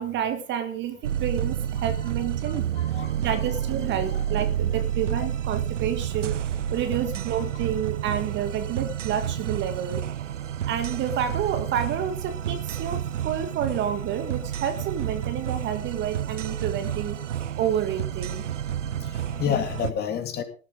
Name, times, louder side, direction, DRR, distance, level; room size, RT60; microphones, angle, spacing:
voice 1, 0.0-2.7 3.2-10.1 10.6-18.5, right 9 dB, 30° right, 8 dB, 1.7 m, -29 dB
sound 1, 1.0-19.9, right 10 dB, 65° right, 0.9 m, -30 dB
voice 2, 2.5-3.3 5.1-5.3 18.7-20.4, left 8 dB, 25° left, 7 dB, 2.8 m, -30 dB
18.5 x 12.0 x 3.8 m, 0.36 s
figure-of-eight pair, 100°, 39 cm